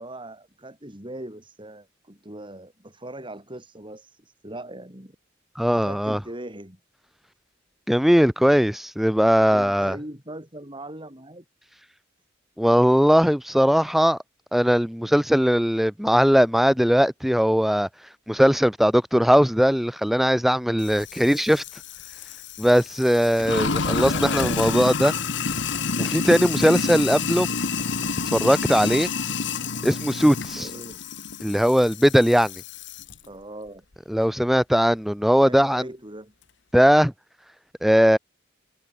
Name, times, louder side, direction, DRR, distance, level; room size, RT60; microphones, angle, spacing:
voice 1, 0.0-5.2 5.7-6.8 9.5-11.4 24.0-24.7 30.5-31.0 33.2-33.8 35.4-36.3, right 1 dB, 25° right, 7.7 m, -40 dB
voice 2, 5.6-6.2 7.9-10.0 12.6-14.2 14.5-17.9 18.3-21.6 22.6-25.1 26.0-27.5 28.3-29.1 29.8-30.7 31.4-32.5 34.1-35.8 36.7-37.1 37.8-38.2, equal, ahead, 0.5 m, -19 dB
Sink (filling or washing), 20.8-33.1, left 4 dB, 65° left, 1.6 m, -29 dB
head